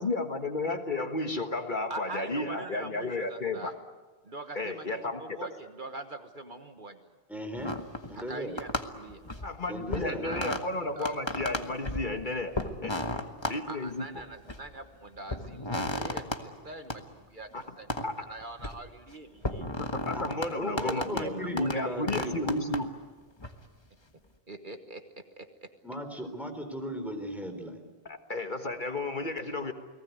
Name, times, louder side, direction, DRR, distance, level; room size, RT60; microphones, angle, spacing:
voice 1, 0.0-3.7 4.6-5.2 9.4-12.6 12.8-13.0 13.5-14.1 17.5-17.6 18.0-18.1 19.8-22.9 28.1-29.7, left 2 dB, 50° left, 6 dB, 1.6 m, -32 dB
voice 2, 1.9-3.7 4.2-7.1 8.1-9.2 9.9-10.6 11.0-11.4 13.7-17.5 17.8-19.9 20.9-22.3 24.5-25.7, right 2 dB, 50° right, 7 dB, 1.5 m, -43 dB
voice 3, 7.3-7.8 8.1-8.6 9.7-10.3 20.1-22.6 25.8-27.8, equal, ahead, 5 dB, 3.8 m, -37 dB
sound 1, 7.6-8.3 8.6-9.6 9.9-10.6 11.0-12.1 12.6-13.6 14.2-14.8 15.3-16.4 16.9-17.0 17.9-18.1 18.4-18.8 19.4-20.5 20.8-21.3 21.6-21.8 22.1-22.8 23.4-23.5, left 1 dB, 25° left, 1.5 m, -34 dB
30.0 x 19.0 x 9.4 m, 1.3 s
omnidirectional pair, 1.0 m